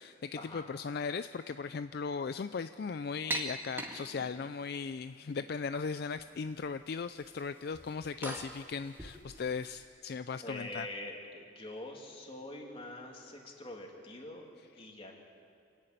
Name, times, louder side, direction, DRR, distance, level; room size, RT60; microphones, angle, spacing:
voice 1, 0.0-10.9, left 5 dB, 60° left, 12 dB, 0.4 m, -38 dB
sound 1, 3.3-4.6 5.3-5.9 6.1-6.7 7.0-9.7, right 2 dB, 10° right, 1.9 m, -42 dB
voice 2, 10.4-14.5 14.7-15.2, left 1 dB, 30° left, 0 dB, 2.7 m, -44 dB
27.5 x 11.0 x 9.2 m, 2.4 s
head